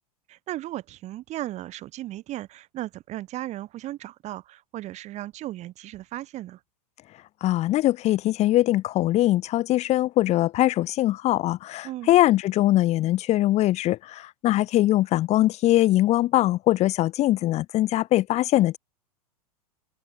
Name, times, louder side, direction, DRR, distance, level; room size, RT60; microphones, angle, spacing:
voice 1, 0.3-6.6 11.8-12.1, right 15 dB, 35° right, 2.2 m, -36 dB
voice 2, 7.4-18.8, left 15 dB, 35° left, 1.4 m, -22 dB
open air
figure-of-eight pair, 95°, 20 cm